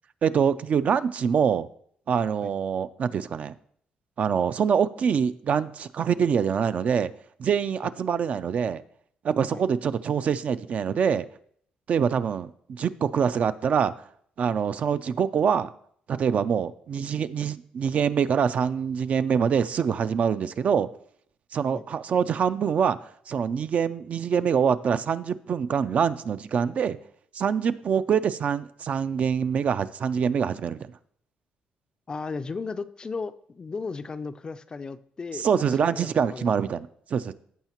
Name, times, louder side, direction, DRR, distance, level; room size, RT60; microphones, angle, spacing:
voice 1, 0.2-1.7 2.1-3.6 4.2-7.1 7.4-8.8 9.2-11.3 11.9-13.9 14.4-15.7 16.1-20.9 21.5-27.0 27.3-30.8 35.3-37.3, right 7 dB, 50° right, 13 dB, 0.4 m, -25 dB
voice 2, 32.1-36.5, left 4 dB, 30° left, 13 dB, 0.4 m, -35 dB
14.5 x 5.6 x 2.9 m, 0.63 s
cardioid pair, 115°, 3 cm